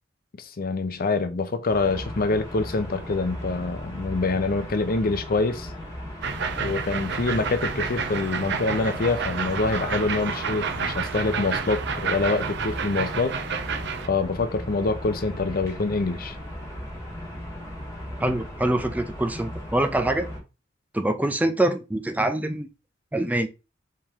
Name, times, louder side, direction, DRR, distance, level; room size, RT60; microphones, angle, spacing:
voice 1, 0.4-5.7 6.6-13.4 14.1-16.3, left 3 dB, 50° left, 0.6 m, -25 dB
sound 1, 1.7-20.4, equal, 15° left, 1.6 m, -37 dB
sound 2, 6.2-14.1, right 5 dB, 60° right, 0.7 m, -30 dB
voice 2, 18.2-20.3 20.9-22.7 23.1-23.5, right 1 dB, 10° right, 0.4 m, -24 dB
4.5 x 3.3 x 3.6 m
head